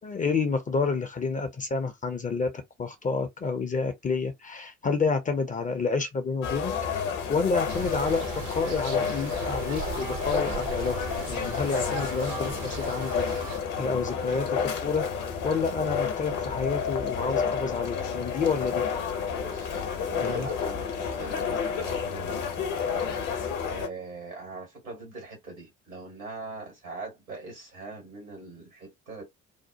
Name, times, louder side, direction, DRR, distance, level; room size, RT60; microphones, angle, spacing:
voice 1, 0.0-2.5 2.8-6.7 7.0-11.0 11.3-13.2 13.8-15.1 15.4-18.8 20.2-20.5, left 4 dB, 20° left, 0.5 m, -29 dB
sound 1, 6.4-23.9, left 6 dB, 50° left, 0.8 m, -30 dB
sound 2, 7.7-13.6, right 6 dB, 65° right, 0.8 m, -38 dB
voice 2, 19.3-23.1 23.7-29.2, right 3 dB, 85° right, 1.6 m, -42 dB
2.8 x 2.0 x 2.7 m
figure-of-eight pair, 50°, 41 cm